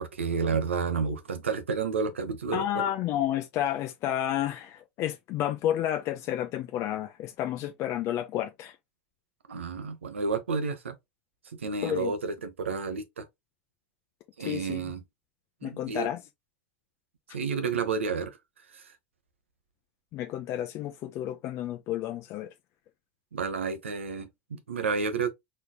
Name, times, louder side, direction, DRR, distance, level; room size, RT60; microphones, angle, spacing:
voice 1, 0.0-2.6 9.5-10.9 11.6-13.3 14.4-15.0 15.6-16.1 17.3-18.4 18.7-18.8 23.3-25.3, right 5 dB, 85° right, 0.9 m, -30 dB
voice 2, 2.5-8.8 11.8-12.1 14.4-14.8 15.6-16.2 20.1-22.5, left 12 dB, 45° left, 0.6 m, -31 dB
4.5 x 3.5 x 2.3 m
hypercardioid pair, 85°, 7 cm